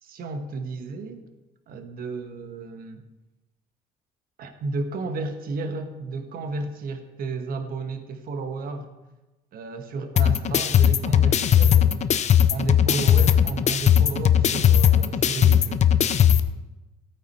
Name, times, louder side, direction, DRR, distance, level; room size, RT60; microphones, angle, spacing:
voice 1, 0.0-1.2 1.7-3.0 4.4-8.9 9.5-11.9 12.5-15.9, right 3 dB, 60° right, 7 dB, 1.4 m, -33 dB
sound 1, 10.2-16.4, left 9 dB, 45° left, 0.7 m, -19 dB
15.0 x 8.8 x 4.3 m, 1.1 s
cardioid pair, 110°, 17 cm